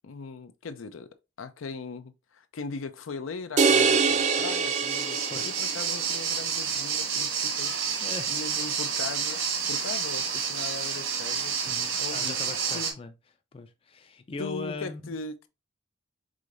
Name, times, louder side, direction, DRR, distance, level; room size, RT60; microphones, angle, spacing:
voice 1, 0.0-1.1 1.4-7.7 8.3-9.4 9.7-11.6 12.0-12.4 12.7-13.0 14.4-15.5, left 4 dB, 80° left, 0.5 m, -39 dB
sound 1, 3.6-5.9, right 5 dB, 35° right, 0.4 m, -24 dB
sound 2, 4.1-12.9, right 6 dB, 85° right, 1.4 m, -30 dB
voice 2, 8.0-8.4 11.6-13.1 13.5-15.2, left 3 dB, 30° left, 0.4 m, -39 dB
4.9 x 3.8 x 2.5 m
head